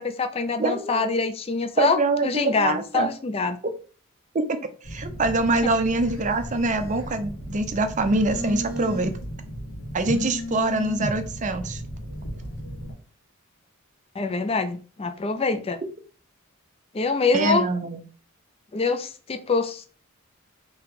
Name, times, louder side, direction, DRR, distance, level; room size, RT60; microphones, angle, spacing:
voice 1, 0.0-3.6 14.2-15.8 16.9-17.7 18.7-19.9, left 4 dB, 25° left, 8 dB, 0.4 m, -25 dB
voice 2, 0.6-1.1 1.8-3.1 4.3-4.4 4.8-9.1 9.9-11.8 17.3-18.0, right 2 dB, 35° right, 8 dB, 0.5 m, -24 dB
Telephone, 4.8-12.9, equal, 75° left, 1.6 m, -34 dB
3.9 x 2.9 x 4.7 m, 0.38 s
head